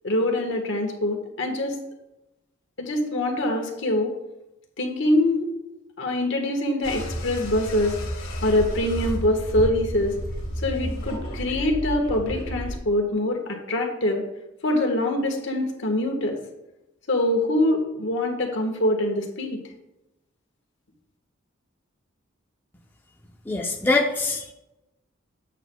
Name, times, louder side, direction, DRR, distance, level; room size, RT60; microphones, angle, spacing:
voice 1, 0.0-1.8 2.8-4.1 4.8-5.5 6.0-7.9 8.4-10.2 10.6-14.2 14.6-16.4 17.1-19.6, left 1 dB, 65° left, 2 dB, 1.5 m, -24 dB
sound 1, 6.8-12.8, equal, 85° left, 1.5 m, -31 dB
voice 2, 23.5-24.5, left 3 dB, 10° left, -1 dB, 0.6 m, -23 dB
9.3 x 8.2 x 2.3 m, 0.94 s
head